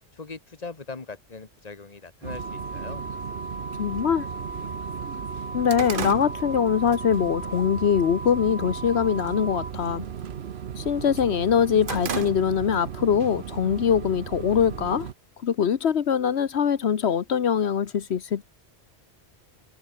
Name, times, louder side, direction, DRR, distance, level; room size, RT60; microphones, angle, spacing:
voice 1, 0.1-3.0, left 4 dB, 35° left, 1.8 m, -40 dB
sound 1, 2.2-15.1, right 8 dB, 70° right, 1.1 m, -36 dB
sound 2, 2.3-9.7, right 2 dB, 10° right, 0.4 m, -37 dB
voice 2, 3.8-4.3 5.5-10.1 10.8-15.1 15.4-18.4, left 8 dB, 80° left, 1.3 m, -23 dB
sound 3, 3.8-3.9 4.4-4.5 4.8-7.2 7.6-7.9 8.4-8.9 9.1-9.5 9.8-11.0 11.4-12.9 13.2-13.3 14.2-15.1, right 6 dB, 55° right, 1.3 m, -35 dB
omnidirectional pair, 1.1 m